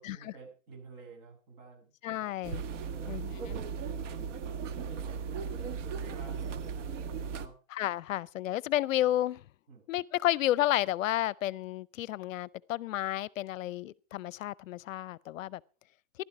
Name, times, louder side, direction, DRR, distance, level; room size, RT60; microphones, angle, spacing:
voice 1, 0.0-2.4 2.8-3.5 3.9-7.6 9.7-9.8, right 4 dB, 45° right, 7.7 m, -52 dB
voice 2, 2.0-2.6 3.1-3.6 7.7-9.5 9.9-15.6, left 14 dB, 70° left, 0.6 m, -31 dB
sound 1, 2.4-7.5, right 6 dB, 60° right, 1.5 m, -37 dB
15.0 x 12.0 x 4.7 m
hypercardioid pair, 160°, 41 cm